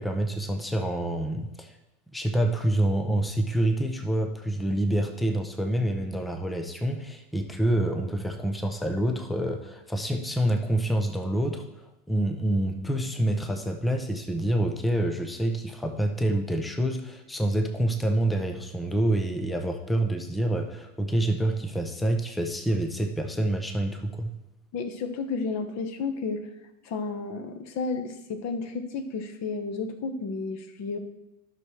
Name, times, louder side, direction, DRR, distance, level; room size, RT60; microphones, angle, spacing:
voice 1, 0.0-1.7 2.1-11.6 12.1-24.3, right 1 dB, ahead, 5 dB, 0.4 m, -27 dB
voice 2, 24.7-26.4 26.8-31.0, left 4 dB, 35° left, 8 dB, 1.1 m, -32 dB
12.0 x 6.1 x 3.2 m, 0.91 s
hypercardioid pair, 95°, 48 cm